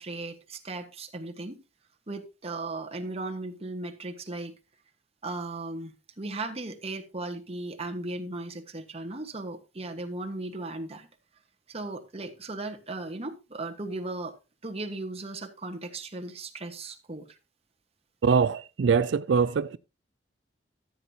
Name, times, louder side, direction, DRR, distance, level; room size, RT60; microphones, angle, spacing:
voice 1, 0.0-1.6 2.1-4.5 5.2-11.1 11.7-14.4 14.6-17.4, right 2 dB, 35° right, 1.3 m, -37 dB
voice 2, 18.2-19.8, right 6 dB, 80° right, 0.4 m, -23 dB
14.0 x 8.1 x 2.8 m
head